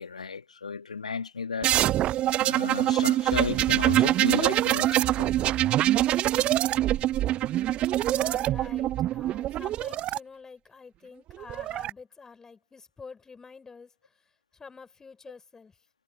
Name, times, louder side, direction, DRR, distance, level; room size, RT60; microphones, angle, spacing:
voice 1, 0.0-1.8 2.4-5.3, left 5 dB, 80° left, 2.2 m, -34 dB
sound 1, 1.6-10.2 11.3-11.9, right 14 dB, 30° right, 0.4 m, -24 dB
voice 2, 8.0-15.8, left 5 dB, 15° left, 5.9 m, -48 dB
figure-of-eight pair, 95°, 4 cm